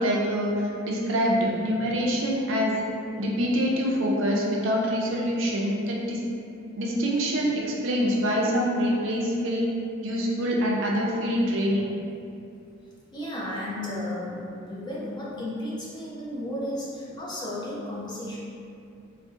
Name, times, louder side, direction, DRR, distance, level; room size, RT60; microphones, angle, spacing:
voice 1, 0.0-2.8 3.2-6.2 6.8-9.7 10.0-11.9, equal, 60° right, -2 dB, 0.4 m, -25 dB
voice 2, 13.1-18.4, left 1 dB, 20° left, -7 dB, 0.4 m, -33 dB
2.5 x 2.0 x 3.5 m, 2.5 s
head